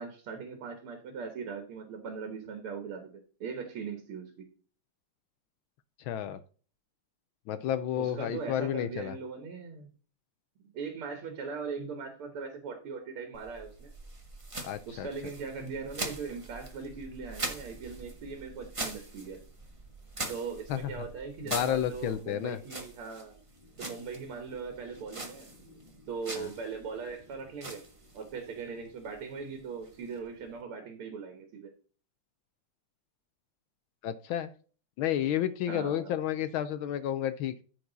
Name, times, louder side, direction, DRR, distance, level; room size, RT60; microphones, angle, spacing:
voice 1, 0.0-4.3 8.0-9.9 10.7-13.9 14.9-19.4 20.3-23.4 23.8-25.5 26.1-27.8 28.1-31.7 35.7-36.1, right 5 dB, 80° right, 5 dB, 2.3 m, -40 dB
voice 2, 6.0-6.4 7.5-9.2 14.6-15.1 20.7-20.9 21.5-22.6 26.4-26.5 34.0-34.5 35.0-37.6, left 11 dB, 75° left, 12 dB, 1.3 m, -31 dB
sound 1, 13.3-30.6, right 2 dB, 20° right, 1.0 m, -43 dB
14.0 x 4.6 x 4.0 m, 0.40 s
omnidirectional pair, 2.4 m